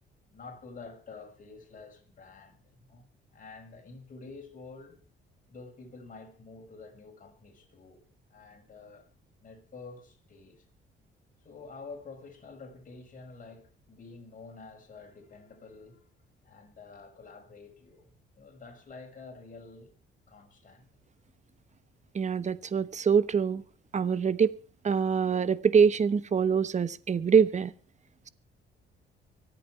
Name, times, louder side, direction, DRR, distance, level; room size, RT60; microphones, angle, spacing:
voice 1, 0.3-3.1 3.3-5.0 5.5-9.1 9.4-10.7 11.4-16.1 16.4-19.9 20.3-20.9, left 4 dB, 40° left, 5.8 m, -49 dB
voice 2, 22.1-23.6 23.9-24.5 24.8-27.7, right 6 dB, 35° right, 1.1 m, -24 dB
25.0 x 8.5 x 4.7 m
cardioid pair, 90°, 20 cm